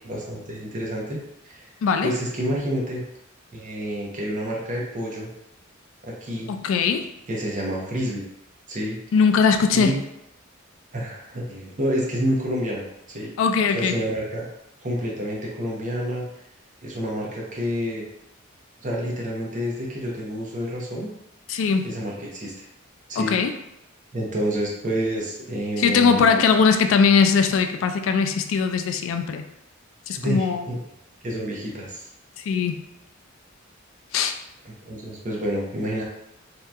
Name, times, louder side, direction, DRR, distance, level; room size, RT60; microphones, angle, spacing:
voice 1, 0.1-1.2 1.4-1.7 2.0-3.0 3.5-5.3 6.1-6.5 7.3-8.2 8.7-9.0 9.7-10.0 10.9-13.3 13.7-14.5 14.8-16.3 16.8-18.1 18.8-21.1 21.8-22.7 23.1-23.4 24.1-26.5 30.2-30.8 31.2-32.1 34.6-36.0, equal, 40° right, -2 dB, 0.7 m, -28 dB
voice 2, 1.8-2.1 6.5-7.1 9.1-10.0 13.4-14.0 21.5-21.9 23.2-23.6 25.8-29.4 30.1-30.7 32.4-32.8 34.1-34.3, left 5 dB, 70° left, 7 dB, 0.3 m, -20 dB
2.8 x 2.3 x 3.3 m, 0.81 s
head